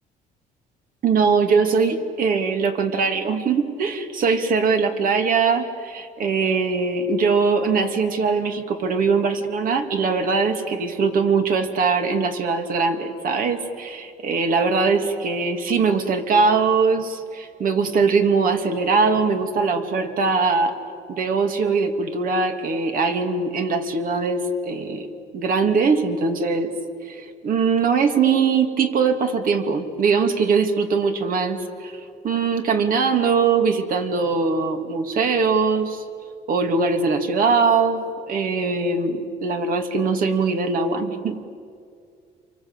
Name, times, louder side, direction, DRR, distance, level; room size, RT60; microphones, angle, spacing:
voice 1, 1.0-20.8 21.1-25.1 25.3-26.7 27.1-36.0 36.5-41.4, right 4 dB, 55° right, 6 dB, 2.7 m, -21 dB
30.0 x 24.5 x 8.2 m, 2.3 s
cardioid pair, 110°, 17 cm